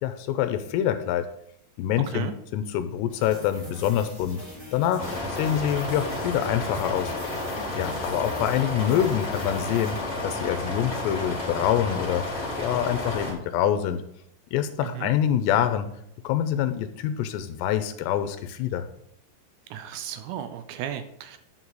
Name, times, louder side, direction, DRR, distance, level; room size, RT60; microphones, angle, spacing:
voice 1, 0.0-1.3 1.8-4.4 4.7-7.1 7.7-10.0 10.2-12.3 12.6-14.0 14.5-15.9 16.2-18.9, left 10 dB, 85° left, 10 dB, 2.7 m, -26 dB
sound 1, 3.1-10.7, left 1 dB, 20° right, 0.9 m, -44 dB
sound 2, 5.0-13.3, left 2 dB, 55° left, 0.7 m, -31 dB
voice 2, 19.7-21.4, right 10 dB, 80° right, 10 dB, 2.6 m, -34 dB
10.0 x 6.3 x 4.0 m, 0.71 s
omnidirectional pair, 5.1 m